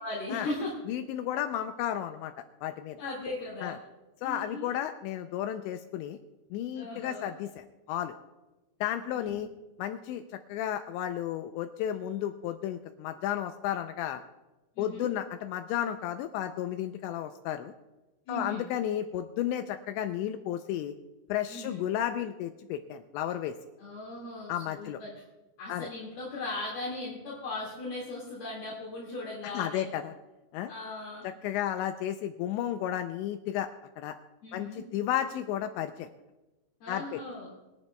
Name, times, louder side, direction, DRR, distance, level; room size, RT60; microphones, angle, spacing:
voice 1, 0.0-0.7 3.0-3.7 4.2-4.7 6.8-7.3 9.1-9.4 14.8-15.1 18.3-18.7 21.5-21.9 23.8-25.1 25.6-29.9 30.7-31.2 34.4-34.8 36.8-37.5, left 2 dB, 60° left, -5 dB, 3.6 m, -38 dB
voice 2, 0.9-2.3 2.6-3.0 3.6-3.8 4.2-6.2 6.5-8.2 8.8-9.5 9.8-10.2 10.5-14.2 14.8-17.7 18.3-20.9 21.3-23.5 24.5-25.0 25.7-25.9 29.4-30.1 30.5-30.7 31.4-33.7 34.0-34.2 34.5-36.1 36.9-37.2, left 11 dB, 85° left, 8 dB, 2.6 m, -33 dB
24.0 x 10.5 x 2.2 m, 1.1 s
omnidirectional pair, 5.7 m